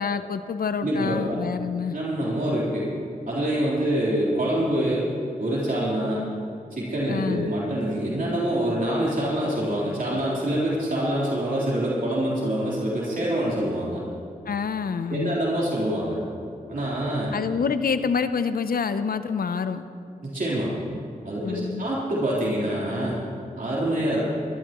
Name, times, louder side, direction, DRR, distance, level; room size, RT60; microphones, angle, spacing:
voice 1, 0.0-2.0 7.1-7.5 14.4-15.4 17.3-19.8 21.4-21.9, left 5 dB, 75° left, 11 dB, 0.7 m, -27 dB
voice 2, 0.8-1.4 1.9-2.9 3.3-5.0 5.4-6.2 6.7-14.0 15.1-16.2 16.7-17.4 20.2-20.7 21.2-23.2 23.6-24.2, right 1 dB, 70° right, -7 dB, 3.8 m, -25 dB
23.0 x 12.5 x 3.0 m, 2.4 s
cardioid pair, 45°, 15 cm